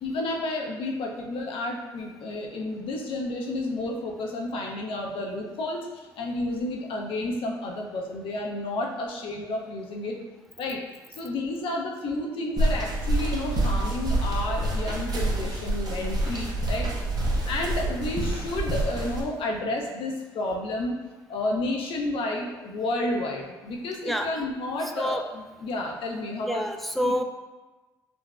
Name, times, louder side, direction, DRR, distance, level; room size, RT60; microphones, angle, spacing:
voice 1, 0.0-5.9 6.2-10.2 10.6-10.8 11.2-16.9 17.4-20.9 21.3-26.6 27.0-27.1, left 2 dB, 65° left, 0 dB, 0.6 m, -31 dB
sound 1, 12.6-19.2, right 1 dB, 40° right, 0.8 m, -27 dB
voice 2, 26.5-27.2, equal, ahead, 5 dB, 0.3 m, -27 dB
3.8 x 2.2 x 2.3 m, 1.2 s
supercardioid pair, 65°, 10 cm